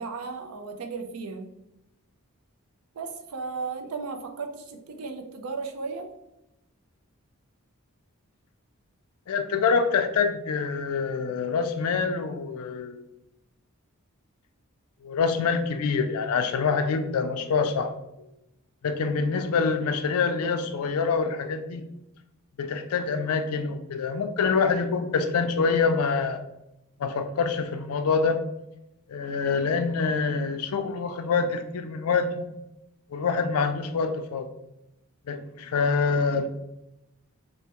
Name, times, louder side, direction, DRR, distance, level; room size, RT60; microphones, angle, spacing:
voice 1, 0.0-1.5 2.9-6.1, right 4 dB, 85° right, 5 dB, 0.4 m, -35 dB
voice 2, 9.3-13.0 15.0-17.9 18.8-21.9 22.6-26.4 27.0-28.4 29.1-32.5 33.1-34.5 35.3-36.5, left 5 dB, 80° left, 8 dB, 0.4 m, -26 dB
3.3 x 2.1 x 2.8 m, 0.87 s
head